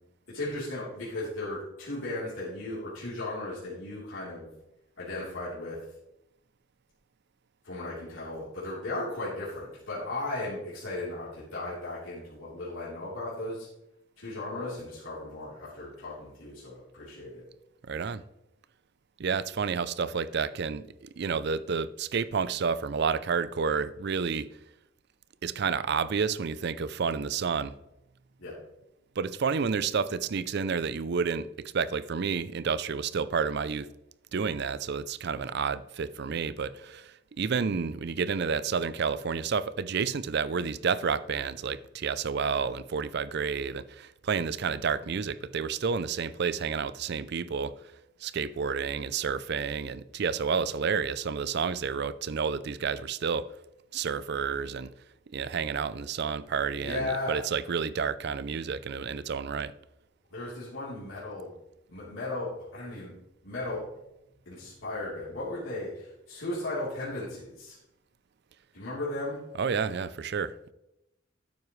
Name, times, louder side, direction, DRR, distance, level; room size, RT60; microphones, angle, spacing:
voice 1, 0.3-4.5 5.0-5.8 7.6-13.7 14.2-17.4 28.4-28.5 56.8-57.4 60.3-61.5 61.9-63.1 63.4-63.9 64.5-67.8 68.7-69.4, left 2 dB, 85° left, 3.6 m, -36 dB
voice 2, 17.8-18.2 19.2-24.5 25.4-27.7 29.2-31.5 31.7-33.9 34.3-47.7 48.2-53.5 53.9-54.9 55.3-59.7 69.6-70.7, right 5 dB, 55° right, 0.5 m, -30 dB
12.5 x 9.5 x 3.2 m
head